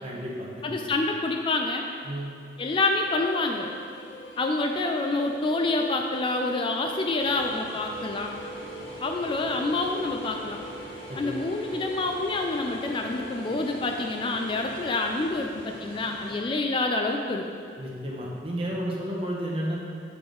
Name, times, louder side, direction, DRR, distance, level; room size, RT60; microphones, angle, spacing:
voice 1, 0.0-0.8 2.0-2.3 11.1-11.3 17.8-19.7, equal, 30° right, -4 dB, 1.1 m, -32 dB
voice 2, 0.6-1.8 2.6-3.7 4.4-8.4 9.0-10.6 11.2-17.5, left 2 dB, 30° left, 3 dB, 0.3 m, -27 dB
sound 1, 2.6-15.3, equal, 80° left, 0.7 m, -43 dB
sound 2, 7.2-16.4, equal, 55° right, 1.3 m, -45 dB
6.8 x 4.8 x 3.8 m, 2.4 s
head